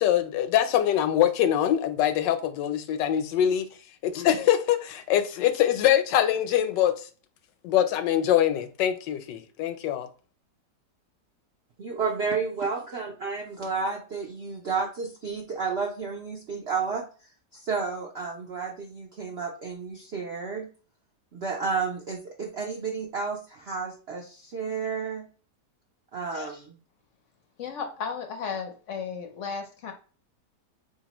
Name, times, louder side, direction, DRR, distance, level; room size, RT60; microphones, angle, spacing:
voice 1, 0.0-3.7 4.0-7.1 7.6-10.1, left 11 dB, 90° left, 1.3 m, -23 dB
voice 2, 11.8-17.1 17.5-20.7 21.3-25.3 26.1-26.7, right 5 dB, 65° right, 0.6 m, -31 dB
voice 3, 27.6-29.9, left 6 dB, 60° left, 0.8 m, -34 dB
4.2 x 2.8 x 2.9 m
omnidirectional pair, 1.9 m